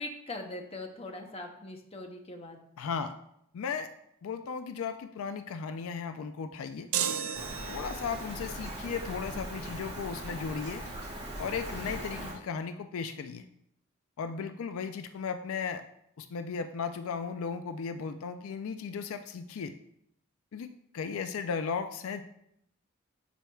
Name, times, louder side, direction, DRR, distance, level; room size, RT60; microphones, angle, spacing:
voice 1, 0.0-2.6, left 2 dB, 25° left, 3 dB, 0.7 m, -41 dB
voice 2, 2.8-3.1 3.5-3.9 4.2-6.9 7.7-10.8 11.4-13.4 14.2-15.8 16.2-19.7 20.5-22.2, left 5 dB, 70° left, 8 dB, 0.4 m, -36 dB
sound 1, 6.9-8.2, right 8 dB, 80° right, 0.5 m, -33 dB
Rain, 7.3-12.3, right 1 dB, 25° right, 2.0 m, -40 dB
11.0 x 4.5 x 2.3 m, 0.73 s
head